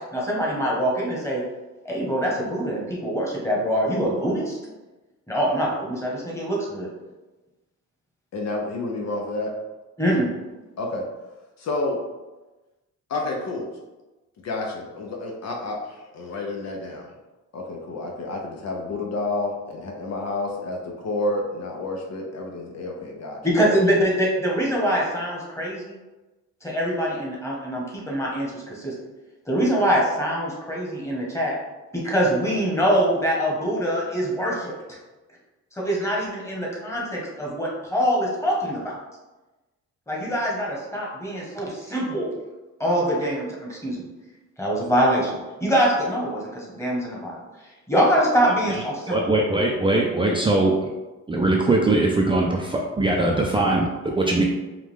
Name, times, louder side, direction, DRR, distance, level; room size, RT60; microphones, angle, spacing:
voice 1, 0.0-1.4 1.8-4.6 5.3-6.9 10.0-10.3 23.4-26.0 26.6-28.9 29.5-31.5 31.9-35.0 35.7-39.0 40.1-42.3 42.8-44.0 44.6-47.4 47.9-49.4, equal, 10° left, -4 dB, 1.4 m, -24 dB
voice 2, 8.3-9.5 10.8-11.0 11.6-12.0 13.1-13.7 14.4-17.1 17.5-23.4, left 2 dB, 60° left, 1 dB, 0.8 m, -29 dB
voice 3, 49.1-50.8 51.3-54.4, right 2 dB, 15° right, -2 dB, 0.5 m, -21 dB
4.8 x 2.4 x 3.6 m, 1.1 s
cardioid pair, 90°, 30 cm